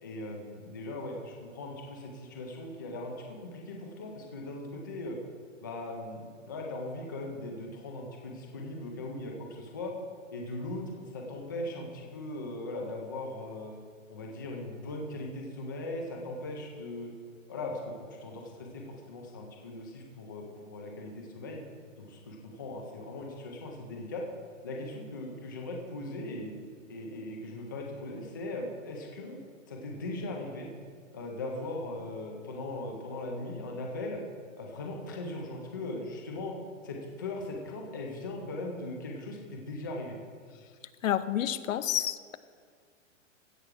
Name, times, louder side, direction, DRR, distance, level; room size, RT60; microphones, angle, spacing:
voice 1, 0.0-5.2 5.6-9.9 10.3-13.7 14.1-17.1 17.5-21.6 22.0-24.2 24.6-26.5 26.9-30.7 31.1-34.2 34.6-36.5 36.8-40.2, left 2 dB, 15° left, 0 dB, 0.4 m, -39 dB
voice 2, 41.0-42.4, left 11 dB, 75° left, 13 dB, 0.7 m, -29 dB
15.5 x 6.1 x 4.8 m, 2.1 s
hypercardioid pair, 170°, 40 cm